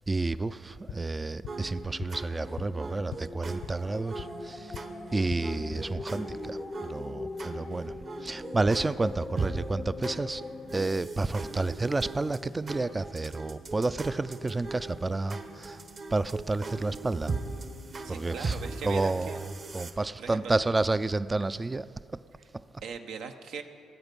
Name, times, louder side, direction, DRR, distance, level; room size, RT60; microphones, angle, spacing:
voice 1, 0.1-4.8 5.1-10.4 10.7-15.8 16.1-17.4 18.1-18.6 18.8-19.5 19.7-21.9 22.5-22.6, right 3 dB, 20° right, 0.3 m, -30 dB
sound 1, 0.9-4.9 5.2-6.0, left 8 dB, 80° left, 0.6 m, -45 dB
sound 2, 1.5-19.9, right 3 dB, 45° right, 1.1 m, -40 dB
sound 3, 2.4-11.1, left 3 dB, 30° left, 0.5 m, -42 dB
voice 2, 18.0-19.4 19.9-20.5 22.8-23.6, right 6 dB, 80° right, 0.9 m, -40 dB
19.0 x 8.1 x 5.3 m
cardioid pair, 90°, 0 cm